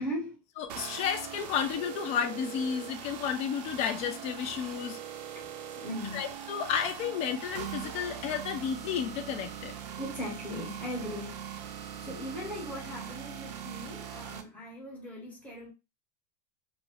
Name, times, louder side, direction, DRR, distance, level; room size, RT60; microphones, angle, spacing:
voice 1, 0.0-0.4 5.3-5.5 5.8-6.2 10.0-11.5 12.0-15.7, left 1 dB, 5° left, 1.0 m, -38 dB
voice 2, 0.6-5.0 6.1-9.7, left 8 dB, 30° left, 0.4 m, -32 dB
sound 1, 0.7-14.4, right 9 dB, 80° right, 0.6 m, -41 dB
2.7 x 2.6 x 3.1 m
supercardioid pair, 165°, 21 cm